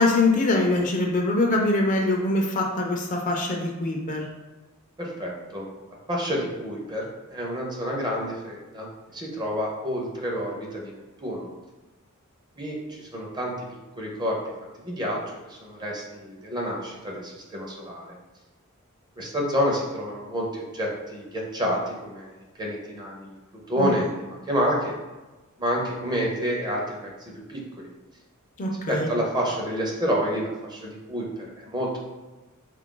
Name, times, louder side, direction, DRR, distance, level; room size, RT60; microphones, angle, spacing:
voice 1, 0.0-4.3 23.8-23.9 28.6-29.1, left 2 dB, 35° left, 1 dB, 0.5 m, -23 dB
voice 2, 5.0-5.7 6.1-8.9 9.1-10.9 11.2-11.5 12.6-13.7 14.0-14.4 14.8-15.2 15.5-18.2 19.2-23.4 23.7-25.0 25.6-27.1 27.5-27.9 28.9-32.0, equal, 20° right, -2 dB, 0.6 m, -29 dB
3.8 x 2.4 x 3.8 m, 1.2 s
head